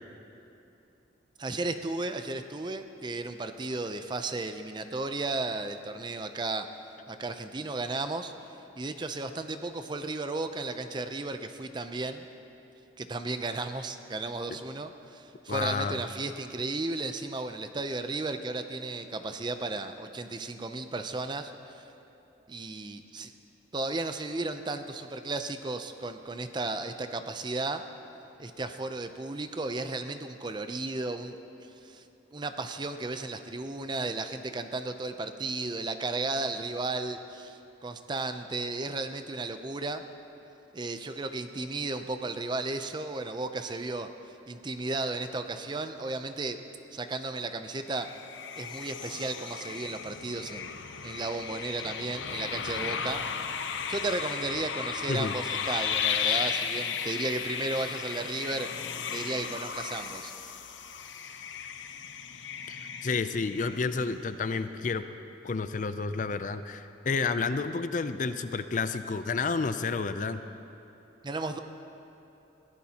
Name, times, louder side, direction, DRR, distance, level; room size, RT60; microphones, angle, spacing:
voice 1, 1.4-6.7 7.1-8.3 8.8-12.2 13.0-21.8 22.5-23.3 23.7-27.8 28.4-31.4 31.8-32.0 32.3-40.0 40.7-44.1 44.5-46.6 46.9-48.1 48.6-50.7 51.0-53.2 53.9-60.3 71.2-71.6, right 2 dB, 25° right, 8 dB, 0.5 m, -34 dB
voice 2, 15.5-16.0 55.1-55.3 62.7-65.0 65.4-70.4, left 4 dB, 45° left, 11 dB, 0.4 m, -30 dB
sound 1, 47.9-64.1, left 7 dB, 80° left, 0.7 m, -35 dB
21.5 x 15.5 x 2.9 m, 2.9 s
head